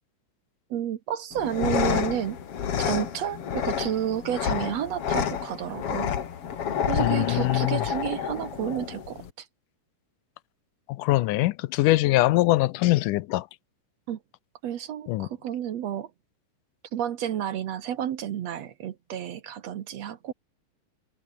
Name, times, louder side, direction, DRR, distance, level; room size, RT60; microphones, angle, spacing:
voice 1, 0.7-2.4 2.8-6.1 6.9-9.5 14.1-14.2 14.6-16.1 16.9-20.3, right 10 dB, 60° right, 2.1 m, -31 dB
sound 1, 1.3-9.3, left 8 dB, 50° left, 2.6 m, -29 dB
voice 2, 7.0-7.8 10.9-13.5 15.1-15.3, left 18 dB, 80° left, 2.2 m, -23 dB
omnidirectional pair, 3.8 m